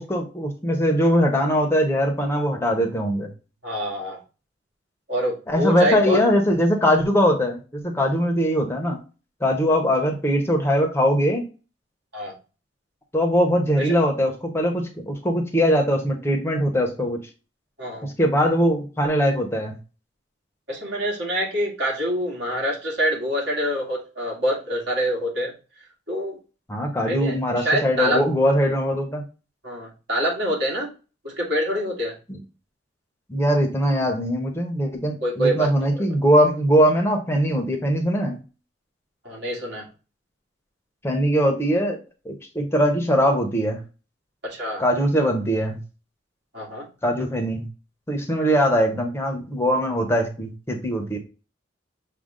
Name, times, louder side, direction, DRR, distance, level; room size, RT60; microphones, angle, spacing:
voice 1, 0.0-3.3 5.5-9.0 9.4-11.4 13.1-17.2 18.0-19.8 26.7-29.2 32.3-32.4 33.3-38.4 41.0-42.0 42.2-43.8 44.8-45.8 47.0-47.7 48.1-51.2, equal, 15° left, 3 dB, 0.7 m, -21 dB
voice 2, 3.6-4.2 5.1-6.2 12.1-12.3 13.8-13.9 17.8-18.1 20.7-25.5 26.1-26.4 27.1-28.2 29.6-30.9 31.2-32.2 35.2-35.7 39.2-39.9 44.4-44.8 46.5-46.9, equal, 65° right, -3 dB, 1.9 m, -25 dB
6.3 x 2.3 x 3.7 m, 0.34 s
head